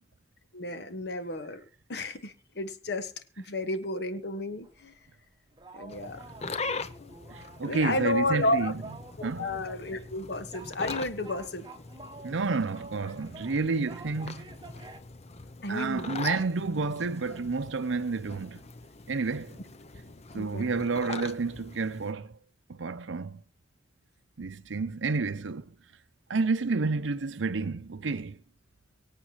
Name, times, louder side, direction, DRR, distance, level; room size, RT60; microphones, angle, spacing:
voice 1, 0.5-1.6 1.9-5.0 5.7-6.2 7.0-7.1 7.6-8.7 9.2-11.7 15.6-16.2 20.3-20.7, left 2 dB, 60° left, 1.5 m, -32 dB
sound 1, 4.6-5.0 5.5-8.2 8.5-8.6 8.7-10.1 10.5-15.0, right 3 dB, 25° right, 1.0 m, -49 dB
sound 2, 5.9-22.1, left 3 dB, 35° left, 0.9 m, -42 dB
voice 2, 7.3-8.8 9.2-9.5 12.2-14.5 15.7-18.6 19.1-19.6 20.3-22.4 22.7-23.4 24.4-25.7 26.3-28.4, right 4 dB, 80° right, 0.7 m, -30 dB
24.5 x 8.4 x 3.0 m
head